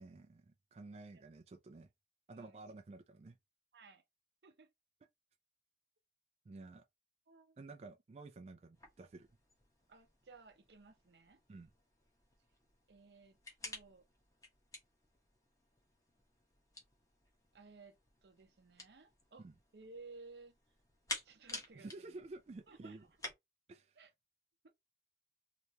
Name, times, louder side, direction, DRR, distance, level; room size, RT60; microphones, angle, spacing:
voice 1, 0.0-1.9 2.3-3.4 6.5-6.8 7.6-9.3 11.5-11.7 19.4-19.6 21.7-23.1 23.7-24.0, right 3 dB, 35° right, 0.3 m, -52 dB
voice 2, 3.7-4.0 4.4-4.7 7.3-7.6 9.9-11.4 12.9-14.1 17.5-19.5 19.7-20.5 21.2-22.2 22.7-23.0 24.0-24.1 24.6-24.7, right 3 dB, 75° right, 0.7 m, -58 dB
sound 1, 8.7-23.3, left 2 dB, 20° left, 1.0 m, -52 dB
3.3 x 2.9 x 2.8 m
head